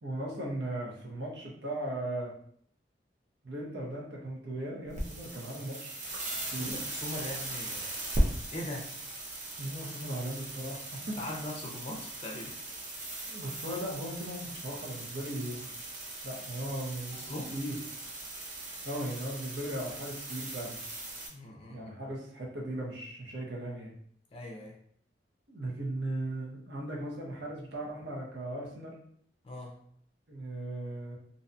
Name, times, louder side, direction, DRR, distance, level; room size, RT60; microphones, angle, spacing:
voice 1, 0.0-2.3 3.4-6.0 6.5-6.8 9.6-11.2 13.3-15.7 16.2-17.8 18.8-20.8 21.7-23.9 25.5-29.0 30.3-31.2, right 1 dB, 70° right, -3 dB, 0.8 m, -37 dB
sound 1, 4.9-21.3, right 1 dB, 40° right, 0.5 m, -38 dB
voice 2, 6.5-7.9 8.5-8.9 11.2-12.5 17.1-17.5 21.3-21.9 24.3-24.7 29.4-29.7, left 1 dB, 30° left, 0 dB, 0.5 m, -40 dB
2.6 x 2.2 x 2.6 m, 0.64 s
head